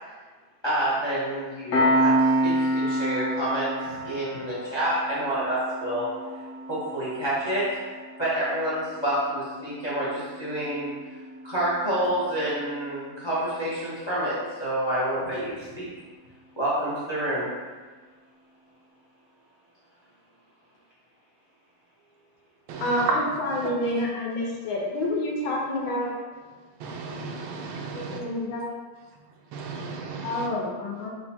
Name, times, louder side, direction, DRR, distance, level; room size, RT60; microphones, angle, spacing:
voice 1, 0.6-3.7 4.0-6.1 6.7-10.9 11.4-15.9 16.6-17.5 29.7-29.8, right 1 dB, 35° left, -9 dB, 0.4 m, -28 dB
Piano, 1.7-12.8, right 1 dB, 55° left, 0.9 m, -29 dB
voice 2, 22.8-26.1 28.1-28.6 30.2-31.1, left 1 dB, 85° left, -2 dB, 1.6 m, -28 dB
voice 3, 26.8-28.2 29.5-30.5, right 4 dB, 80° right, 1 dB, 1.4 m, -36 dB
4.7 x 2.2 x 4.2 m, 1.4 s
omnidirectional pair, 2.2 m